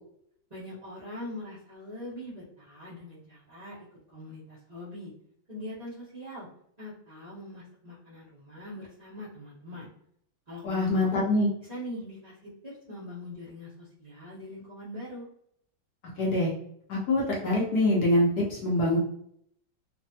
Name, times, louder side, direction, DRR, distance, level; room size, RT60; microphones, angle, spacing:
voice 1, 0.5-3.8 4.1-5.1 5.5-6.5 6.8-9.9 10.5-11.2 11.7-15.3, left 1 dB, 60° right, -12 dB, 0.4 m, -42 dB
voice 2, 10.6-11.5 16.2-16.5 16.9-19.0, left 1 dB, 65° left, -4 dB, 1.0 m, -24 dB
3.2 x 2.1 x 2.8 m, 0.69 s
omnidirectional pair, 2.2 m